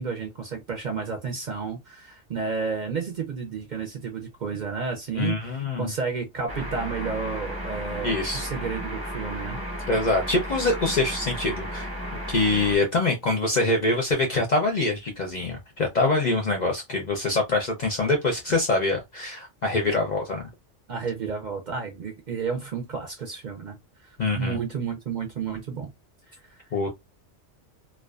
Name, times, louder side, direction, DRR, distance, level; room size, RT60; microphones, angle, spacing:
voice 1, 0.0-9.6 20.9-23.8 24.0-25.9 26.5-26.6, right 5 dB, 50° right, 0.6 m, -31 dB
voice 2, 5.1-5.9 8.0-8.4 9.9-11.9 12.3-20.4 24.2-24.6 26.7-26.9, left 2 dB, 50° left, 0.5 m, -24 dB
sound 1, 6.5-12.8, equal, 20° right, 0.8 m, -34 dB
2.4 x 2.2 x 2.3 m
omnidirectional pair, 1.2 m